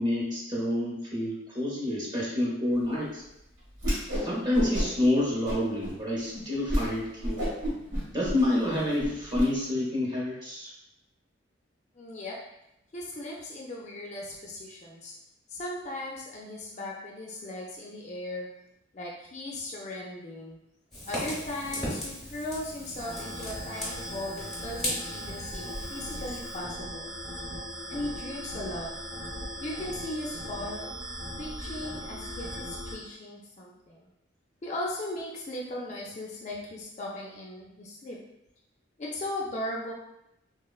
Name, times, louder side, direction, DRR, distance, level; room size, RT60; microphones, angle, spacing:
voice 1, 0.0-3.2 4.1-7.5 8.1-10.7, left 1 dB, 20° right, -5 dB, 0.7 m, -28 dB
Whoosh swoosh swish, 3.8-4.3 4.5-5.1 5.4-5.9 6.3-6.4 6.7-6.9 7.2-9.4, equal, 85° right, 1.4 m, -30 dB
voice 2, 11.9-12.4 12.9-15.1 15.5-18.5 18.9-20.6 21.0-27.1 27.9-28.9 29.6-30.9 31.4-34.1 34.6-38.2 39.0-39.9, left 1 dB, 35° left, -2 dB, 0.3 m, -37 dB
Fire, 20.9-26.6, equal, ahead, 0.9 m, -37 dB
sound 1, 23.0-32.9, equal, 65° right, 0.7 m, -39 dB
3.7 x 2.1 x 2.3 m, 0.85 s
head